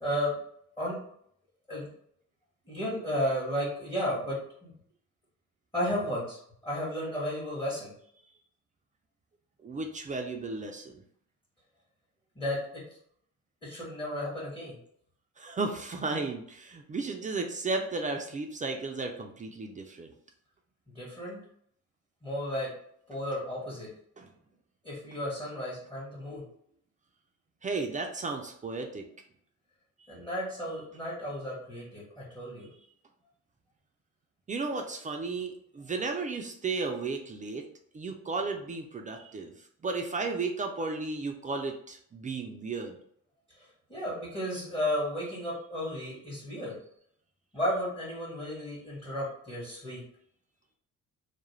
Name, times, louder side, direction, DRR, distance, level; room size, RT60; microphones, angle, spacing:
voice 1, 0.0-0.3 0.8-1.0 1.7-1.9 2.7-4.7 5.7-7.9 12.4-12.8 13.6-14.8 16.1-16.2 20.9-21.4 22.2-22.7 23.1-23.9 24.8-26.4 30.1-32.7 43.6-46.8 47.5-50.0, equal, 20° left, -6 dB, 1.0 m, -33 dB
voice 2, 9.6-11.0 15.4-20.1 24.2-24.3 25.1-25.2 26.3-26.4 27.6-29.0 34.5-37.6 37.9-39.5 39.8-43.0, right 3 dB, 25° right, 3 dB, 0.3 m, -34 dB
2.3 x 2.0 x 3.0 m, 0.66 s
cardioid pair, 90°, 30 cm